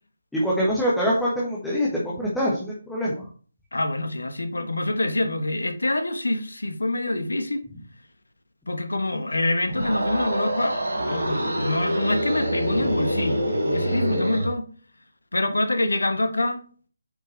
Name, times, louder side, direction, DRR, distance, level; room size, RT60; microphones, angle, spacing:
voice 1, 0.3-3.3, equal, 5° left, 1.5 m, -24 dB
voice 2, 3.7-7.6 8.7-14.6 15.3-16.6, left 2 dB, 70° left, 1.3 m, -26 dB
sound 1, 9.6-14.5, right 1 dB, 70° right, 2.9 m, -26 dB
8.8 x 5.6 x 3.3 m
figure-of-eight pair, 150°, 0 cm